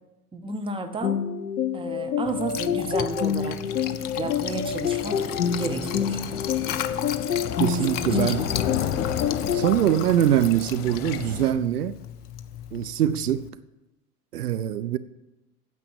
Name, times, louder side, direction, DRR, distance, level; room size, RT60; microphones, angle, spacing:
voice 1, 0.3-1.2 1.7-3.6 4.2-5.2 5.5-6.2 7.7-8.5, right 3 dB, 10° right, 7 dB, 0.9 m, -32 dB
sound 1, 1.0-9.7, left 8 dB, 85° left, 0.7 m, -28 dB
Liquid, 2.3-13.5, left 10 dB, 20° left, 0.4 m, -35 dB
sound 2, 2.8-11.5, left 9 dB, 50° left, 1.2 m, -34 dB
voice 2, 7.6-8.5 9.5-12.0 12.7-13.5 14.3-15.0, right 11 dB, 70° right, 14 dB, 0.6 m, -23 dB
9.4 x 7.5 x 7.6 m, 0.97 s
figure-of-eight pair, 85°, 47 cm